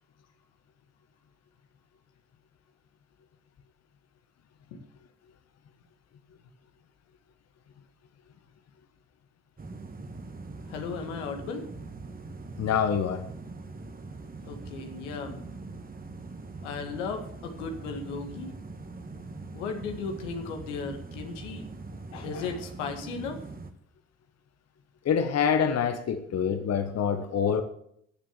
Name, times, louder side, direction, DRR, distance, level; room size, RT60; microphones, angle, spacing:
sound 1, 9.6-23.7, right 3 dB, 25° right, 1.6 m, -42 dB
voice 1, 10.6-11.7 14.5-15.5 16.6-18.6 19.5-21.7 22.1-23.4, left 5 dB, 75° left, 1.9 m, -36 dB
voice 2, 12.6-13.3 25.0-27.6, left 7 dB, 45° left, 1.3 m, -26 dB
14.0 x 7.5 x 7.6 m
figure-of-eight pair, 50°, 35 cm